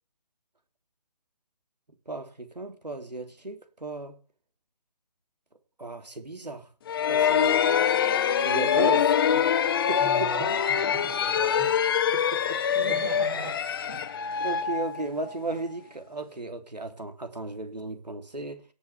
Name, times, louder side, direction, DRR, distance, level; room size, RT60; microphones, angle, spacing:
voice 1, 2.0-4.2 5.8-6.7 7.1-7.6 8.4-9.5 9.9-10.3 12.1-12.6 13.9-14.0 14.4-18.6, right 2 dB, 85° right, 3.4 m, -35 dB
sound 1, 6.9-15.5, left 8 dB, 35° left, 1.2 m, -24 dB
voice 2, 10.0-11.8 12.7-13.6 13.9-14.1, right 5 dB, 20° right, 6.4 m, -38 dB
19.0 x 7.2 x 4.5 m
figure-of-eight pair, 145°, 21 cm